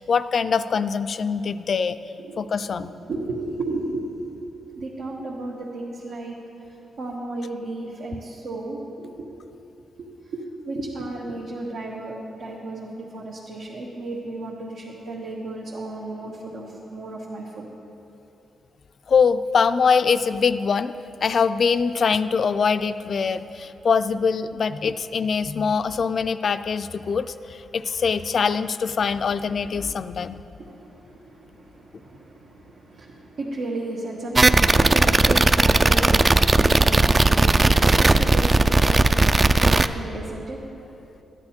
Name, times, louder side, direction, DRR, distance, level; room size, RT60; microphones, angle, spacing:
voice 1, 0.0-2.0 2.4-2.9 19.1-20.9 21.2-30.4, left 5 dB, 55° left, 12 dB, 0.4 m, -23 dB
voice 2, 3.1-6.4 6.7-9.3 10.0-17.7 30.6-41.2, right 2 dB, 80° right, -5 dB, 1.3 m, -34 dB
sound 1, 34.4-39.9, right 2 dB, 25° right, 0.3 m, -17 dB
14.0 x 9.8 x 4.3 m, 2.9 s
cardioid pair, 100°, 0 cm